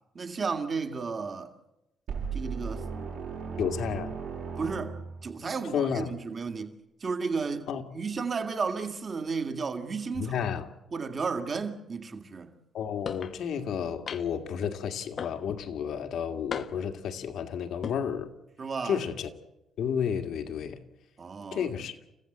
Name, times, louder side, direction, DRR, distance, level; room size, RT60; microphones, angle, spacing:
voice 1, 0.1-1.5 2.3-2.9 4.6-4.9 5.2-6.7 7.0-10.4 10.9-12.5 18.6-19.0 21.2-21.7, right 5 dB, 35° right, 1.9 m, -33 dB
sound 1, 2.1-5.3, right 5 dB, 75° right, 7.1 m, -36 dB
voice 2, 3.6-4.2 5.7-6.1 7.7-7.8 10.2-10.7 12.7-18.3 18.8-19.3 19.8-20.8 21.5-22.0, left 7 dB, 70° left, 1.9 m, -31 dB
sound 2, 13.1-13.4 14.1-14.5 15.2-15.7 16.5-17.0 17.7-18.0, left 7 dB, 50° left, 0.8 m, -37 dB
29.5 x 15.0 x 7.9 m
cardioid pair, 125°, 0 cm